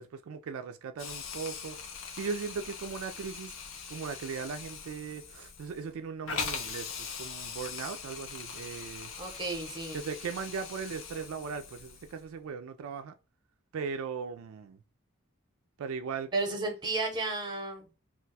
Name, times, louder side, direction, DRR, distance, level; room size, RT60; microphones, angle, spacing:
voice 1, 0.0-3.5 3.9-9.1 9.9-13.1 13.7-14.8 15.8-16.3, right 5 dB, 80° right, 0.3 m, -38 dB
Hiss, 1.0-12.2, left 6 dB, 65° left, 0.5 m, -41 dB
voice 2, 9.2-10.0 16.3-18.0, right 3 dB, 20° right, 0.7 m, -33 dB
2.4 x 2.2 x 3.9 m
head